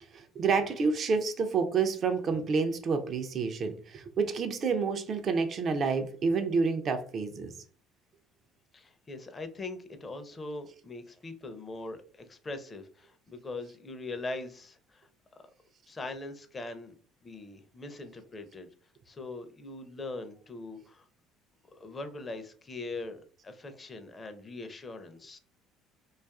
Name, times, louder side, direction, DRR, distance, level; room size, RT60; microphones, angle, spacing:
voice 1, 0.1-7.5, right 5 dB, 45° right, 0.4 m, -29 dB
voice 2, 8.7-15.1 15.9-18.7 19.1-21.1 21.7-25.4, left 2 dB, 30° left, 0.5 m, -41 dB
2.5 x 2.3 x 2.3 m
hypercardioid pair, 70°, 0 cm